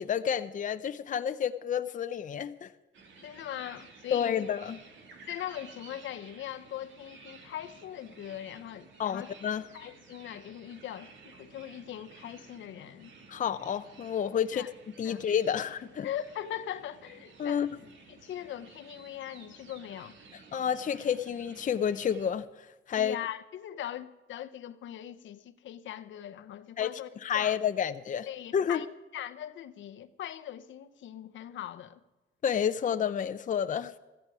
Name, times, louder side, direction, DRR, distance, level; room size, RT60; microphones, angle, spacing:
voice 1, 0.0-2.7 4.1-4.8 9.0-9.6 13.3-14.7 15.0-16.1 17.4-17.7 20.5-23.2 26.8-26.9 27.2-28.3 28.5-28.8 32.4-33.9, left 8 dB, 40° left, 0.6 m, -30 dB
sound 1, 2.9-22.3, right 4 dB, 70° right, 2.3 m, -54 dB
voice 2, 3.2-4.4 5.3-9.3 9.7-13.1 14.5-14.7 15.0-15.2 16.0-17.7 18.1-20.2 23.0-27.6 28.3-28.9 29.1-32.0, left 11 dB, 70° left, 0.8 m, -40 dB
15.5 x 14.0 x 4.8 m
cardioid pair, 90°, 20 cm